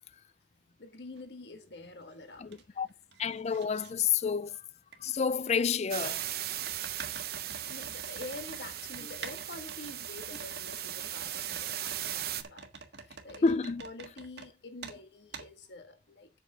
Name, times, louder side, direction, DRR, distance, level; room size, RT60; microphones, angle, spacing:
voice 1, 0.8-2.8 7.7-12.7 13.0-16.3, left 2 dB, 65° left, 1.3 m, -47 dB
sound 1, 1.2-1.3 1.8-2.6 2.9-3.9 4.9-5.0 6.6-14.5 14.8-15.0 15.3-15.5, right 5 dB, 70° right, 1.6 m, -47 dB
voice 2, 2.4-2.9 3.2-4.7 5.0-6.2 13.4-13.8, left 6 dB, 35° left, 0.4 m, -29 dB
sound 2, 5.9-12.4, right 12 dB, 55° right, 0.8 m, -38 dB
8.1 x 5.7 x 5.1 m
head